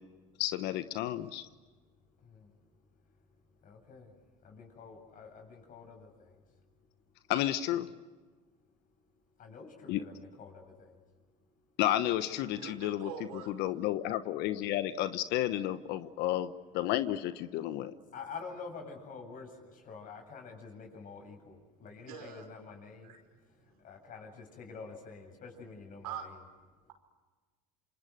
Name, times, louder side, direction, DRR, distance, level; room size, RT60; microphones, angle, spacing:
voice 1, 0.4-1.4 7.3-7.9 9.9-10.0 11.8-13.1 13.5-17.9, left 13 dB, 65° left, 12 dB, 1.1 m, -31 dB
voice 2, 2.2-2.5 3.6-4.1 4.4-6.4 9.4-11.0 18.1-23.1 23.6-26.3, left 5 dB, 45° left, 3 dB, 7.7 m, -48 dB
voice 3, 12.3-13.5 21.8-22.5 23.0-23.2 23.7-23.8 26.0-26.3, right 8 dB, 85° right, 4 dB, 5.4 m, -44 dB
28.0 x 26.0 x 7.9 m, 1.3 s
hypercardioid pair, 85°, 19 cm